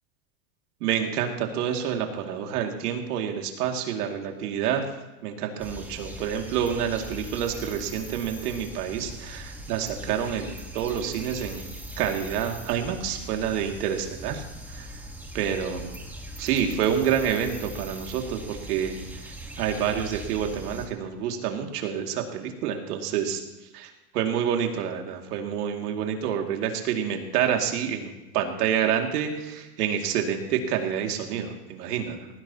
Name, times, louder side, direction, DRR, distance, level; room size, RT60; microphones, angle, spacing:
voice 1, 0.8-4.8 5.2-11.6 12.0-14.4 14.7-14.9 15.3-15.8 16.4-19.0 19.6-23.4 23.7-32.3, right 8 dB, 75° right, 3 dB, 2.5 m, -28 dB
sound 1, 5.6-20.9, equal, 5° right, 1.4 m, -40 dB
19.0 x 15.5 x 3.0 m, 1.1 s
supercardioid pair, 145°, 47 cm